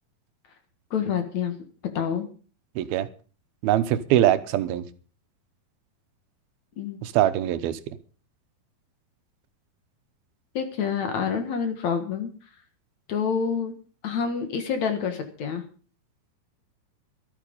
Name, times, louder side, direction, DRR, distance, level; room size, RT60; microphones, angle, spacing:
voice 1, 0.9-1.6 1.9-2.3 6.8-7.0 10.5-12.3 13.1-13.7 14.0-15.6, left 6 dB, 55° left, 7 dB, 2.6 m, -27 dB
voice 2, 2.8-3.1 3.6-4.8 7.0-7.8, right 12 dB, 85° right, 12 dB, 2.8 m, -22 dB
14.0 x 12.5 x 5.3 m, 0.40 s
omnidirectional pair, 4.3 m